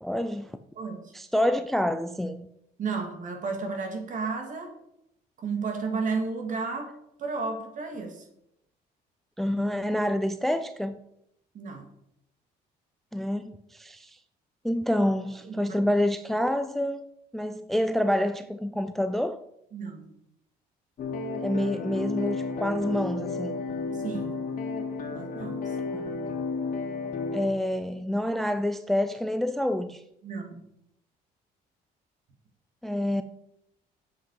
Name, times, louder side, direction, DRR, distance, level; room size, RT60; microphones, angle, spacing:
voice 1, 0.0-0.6 1.1-2.5 9.4-11.0 13.1-14.2 14.6-17.0 17.3-19.4 21.4-23.6 25.8-26.1 27.3-30.0 32.8-33.2, left 1 dB, ahead, 0.4 m, -27 dB
voice 2, 0.8-1.1 2.8-4.7 5.4-6.9 7.2-8.3 11.5-11.9 15.4-15.8 19.7-20.1 23.9-24.4 25.1-25.8 30.2-30.6, right 4 dB, 50° right, 2.2 m, -33 dB
sound 1, 21.0-27.5, left 4 dB, 50° left, 1.9 m, -32 dB
7.8 x 7.7 x 4.8 m
cardioid pair, 110°, 17 cm